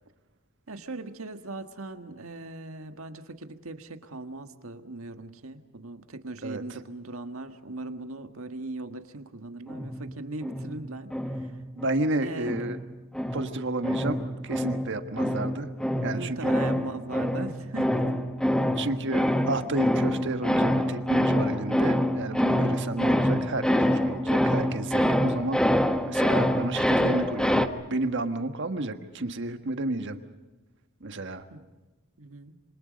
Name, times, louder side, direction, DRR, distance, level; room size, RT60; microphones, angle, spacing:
voice 1, 0.7-11.6 12.2-12.6 16.1-18.2 31.5-31.7 32.2-32.6, right 2 dB, 85° right, 7 dB, 1.6 m, -39 dB
sound 1, 9.7-12.1 12.5-27.7, equal, 5° left, 1.1 m, -26 dB
voice 2, 11.8-12.8 13.3-15.7 16.0-16.5 18.8-30.2 31.0-31.4, right 2 dB, 60° right, 8 dB, 1.5 m, -31 dB
27.0 x 25.0 x 5.3 m, 1.2 s
head